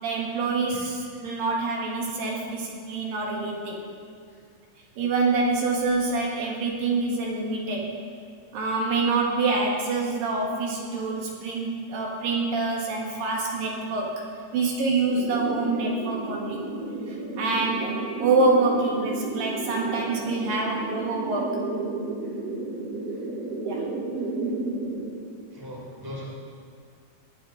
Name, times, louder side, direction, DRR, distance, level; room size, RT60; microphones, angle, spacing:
voice 1, 0.0-3.8 5.0-7.9 8.5-14.2 14.5-16.6 17.1-21.6 23.6-23.8, right 3 dB, 80° right, -1 dB, 3.5 m, -26 dB
sound 1, 15.1-25.0, right 2 dB, 50° right, 3.5 m, -32 dB
voice 2, 25.5-26.2, left 1 dB, 5° right, -5 dB, 2.8 m, -40 dB
18.0 x 11.5 x 4.0 m, 2.3 s
omnidirectional pair, 4.0 m